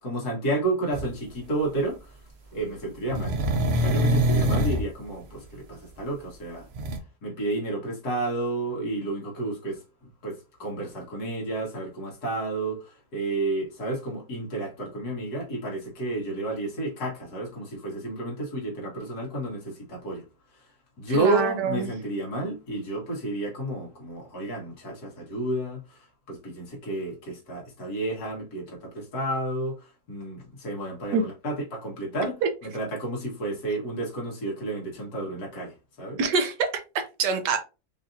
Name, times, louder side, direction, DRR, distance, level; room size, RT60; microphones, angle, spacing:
voice 1, 0.0-2.1 2.5-3.4 3.7-6.7 7.2-9.8 10.2-20.2 21.0-36.2, right 2 dB, 65° left, 2.0 m, -31 dB
sound 1, 0.9-1.1 3.1-4.9 6.7-7.0, equal, 60° right, 0.7 m, -24 dB
voice 2, 21.1-21.9 31.1-31.2 32.4-32.5 36.2-36.7 36.9-37.6, right 5 dB, 85° right, 1.4 m, -25 dB
5.0 x 2.8 x 2.5 m
omnidirectional pair, 1.8 m